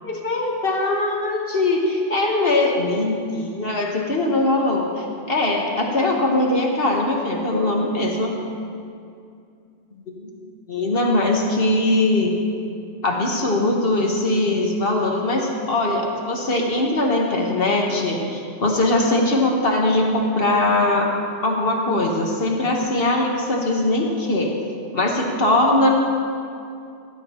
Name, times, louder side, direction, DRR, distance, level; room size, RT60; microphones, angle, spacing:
voice 1, 0.1-8.4 10.1-10.3 10.7-12.3 13.0-21.1 21.4-24.5 24.9-25.9, left 2 dB, 55° left, 0 dB, 1.4 m, -21 dB
16.5 x 7.6 x 4.3 m, 2.4 s
omnidirectional pair, 1.2 m